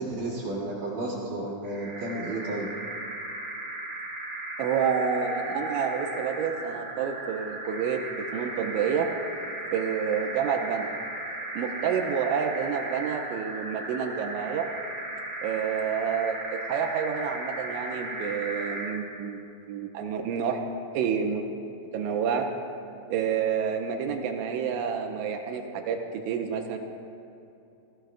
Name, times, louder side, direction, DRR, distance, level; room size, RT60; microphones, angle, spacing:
voice 1, 0.0-2.7, right 2 dB, 55° right, -7 dB, 2.8 m, -32 dB
sound 1, 1.6-19.1, right 2 dB, 25° right, 2.4 m, -36 dB
voice 2, 4.6-8.0 8.3-9.1 9.7-10.9 11.6-14.7 15.4-20.6 20.9-21.5 21.9-22.5 23.1-26.8, right 7 dB, 85° right, 3 dB, 2.8 m, -29 dB
20.0 x 15.5 x 2.3 m, 2.8 s
omnidirectional pair, 6.0 m